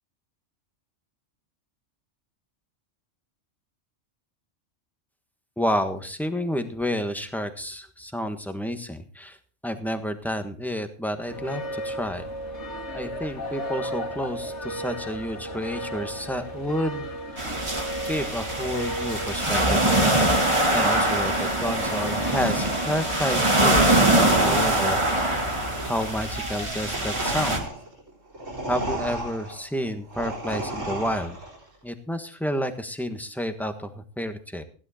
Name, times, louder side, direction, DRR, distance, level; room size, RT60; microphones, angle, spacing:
voice 1, 5.6-9.4 9.6-12.2 12.9-17.6 18.1-20.4 20.7-25.4 25.8-27.7 28.7-31.4 31.8-34.6, equal, ahead, 7 dB, 1.3 m, -30 dB
sound 1, 11.2-24.5, equal, 65° left, 2.3 m, -35 dB
sound 2, 17.4-27.6, right 1 dB, 25° right, 2.1 m, -23 dB
sound 3, 24.2-31.6, right 2 dB, 85° right, 4.3 m, -33 dB
15.5 x 11.0 x 4.3 m, 0.40 s
omnidirectional pair, 1.3 m